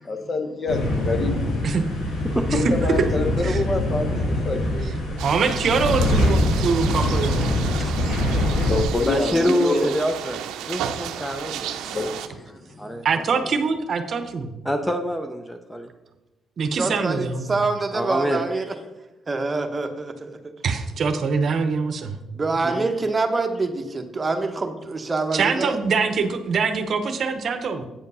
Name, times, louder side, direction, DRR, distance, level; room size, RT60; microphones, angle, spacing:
voice 1, 0.1-1.6 2.5-5.2 7.5-9.9 11.5-13.0, left 3 dB, 40° left, 6 dB, 1.0 m, -28 dB
sound 1, 0.7-8.8, left 1 dB, 80° left, 2.1 m, -24 dB
voice 2, 2.2-2.6 9.0-10.4 10.7-11.7 12.0-12.2 12.8-13.2 14.6-15.9 17.9-18.4 22.6-22.9, equal, 5° left, 6 dB, 0.7 m, -25 dB
voice 3, 5.2-7.7 11.8-12.0 13.0-14.5 16.6-17.6 20.6-22.2 25.3-27.8, right 5 dB, 55° right, 8 dB, 0.8 m, -24 dB
sound 2, 5.2-12.3, right 9 dB, 90° right, 0.5 m, -33 dB
voice 4, 16.7-18.7 19.3-20.5 22.3-25.8, right 3 dB, 25° right, 6 dB, 1.0 m, -26 dB
8.7 x 5.1 x 5.5 m, 1.0 s
cardioid pair, 90°, 0 cm